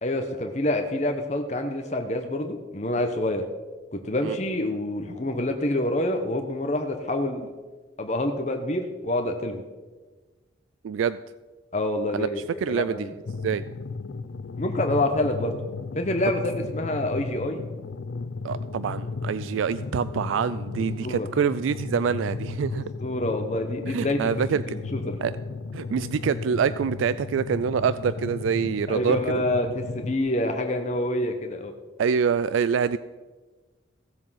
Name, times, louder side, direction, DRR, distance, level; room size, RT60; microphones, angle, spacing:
voice 1, 0.0-3.4 3.9-7.5 8.0-9.6 11.7-13.1 14.6-15.5 15.9-17.6 21.0-21.3 23.0-24.2 24.7-25.2 28.9-31.7, left 1 dB, 35° left, 4 dB, 0.9 m, -27 dB
voice 2, 10.8-11.2 12.1-12.3 12.6-13.1 13.4-13.6 18.4-22.8 23.9-24.6 25.2-25.3 25.7-29.4 32.0-33.0, right 7 dB, 85° right, 14 dB, 0.3 m, -25 dB
sound 1, 13.3-30.2, left 4 dB, 80° left, 0.5 m, -34 dB
16.0 x 7.4 x 5.6 m, 1.3 s
head